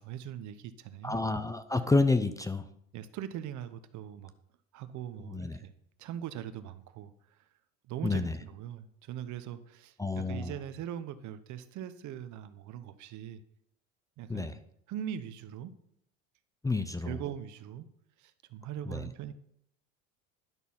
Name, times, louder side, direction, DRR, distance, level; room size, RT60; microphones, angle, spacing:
voice 1, 0.0-1.2 2.9-4.3 4.7-5.7 6.0-7.4 7.9-13.4 14.2-14.6 14.9-15.7 17.1-17.9 18.2-19.3, right 10 dB, 55° right, 12 dB, 0.9 m, -41 dB
voice 2, 1.0-2.6 5.3-5.6 8.0-8.4 10.0-10.5 14.3-14.5 16.6-17.2 18.9-19.0, left 3 dB, 10° left, 11 dB, 0.6 m, -29 dB
11.0 x 6.1 x 5.6 m, 0.72 s
supercardioid pair, 90°, 36 cm